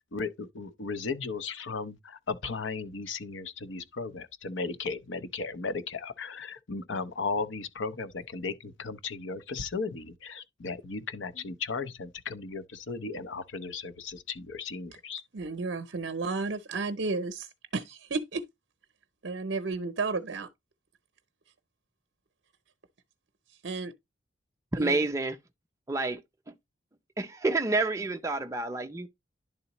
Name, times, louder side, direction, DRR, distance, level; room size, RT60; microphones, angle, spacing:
voice 1, 0.1-15.2, left 4 dB, 75° left, 0.7 m, -36 dB
voice 2, 15.3-18.4 19.2-20.5 23.6-23.9 24.8-25.0, right 3 dB, 65° right, 0.6 m, -32 dB
voice 3, 24.7-25.4 25.9-26.2 26.5-26.6 27.2-29.1, right 2 dB, 15° right, 0.5 m, -28 dB
11.0 x 3.9 x 2.9 m
head